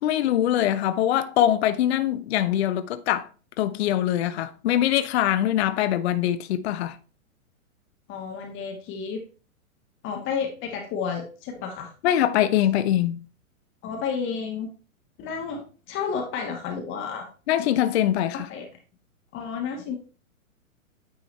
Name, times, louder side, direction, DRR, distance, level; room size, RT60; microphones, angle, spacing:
voice 1, 0.0-3.3 3.6-7.0 12.0-13.2 17.5-18.5, left 11 dB, 50° left, 0.6 m, -23 dB
voice 2, 8.1-9.2 10.0-11.9 13.8-14.7 15.2-17.3 18.5-18.6 19.3-19.9, left 6 dB, 30° left, 1.3 m, -31 dB
9.3 x 3.8 x 3.1 m
hypercardioid pair, 115°, 43 cm